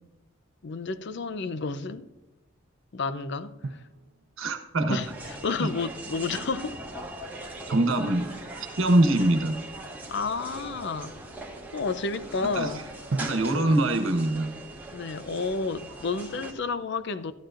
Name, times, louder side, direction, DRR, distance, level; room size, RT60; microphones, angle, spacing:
voice 1, 0.6-2.1 2.9-3.6 4.9-6.8 10.1-11.1 11.7-12.9 14.9-17.3, left 4 dB, 60° left, 0.6 m, -31 dB
Drum, 3.6-4.7 7.7-9.5 13.1-15.1, right 3 dB, 60° right, 0.5 m, -38 dB
voice 2, 4.4-5.0 5.6-5.7 7.7-8.3 8.8-9.6 12.5-12.7 13.2-14.5, right 1 dB, 75° right, 1.2 m, -23 dB
sound 1, 5.0-16.5, right 2 dB, 10° right, 1.4 m, -40 dB
13.0 x 11.5 x 2.5 m
head